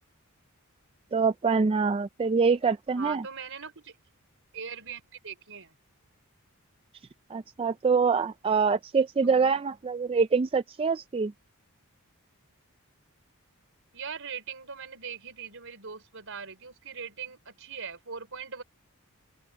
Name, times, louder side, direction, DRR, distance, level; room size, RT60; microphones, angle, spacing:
voice 1, 1.1-3.2 7.3-11.3, right 5 dB, 25° right, 0.3 m, -25 dB
voice 2, 3.0-4.0 4.5-5.7 9.2-9.6 13.9-18.6, right 6 dB, 60° right, 4.9 m, -41 dB
open air
head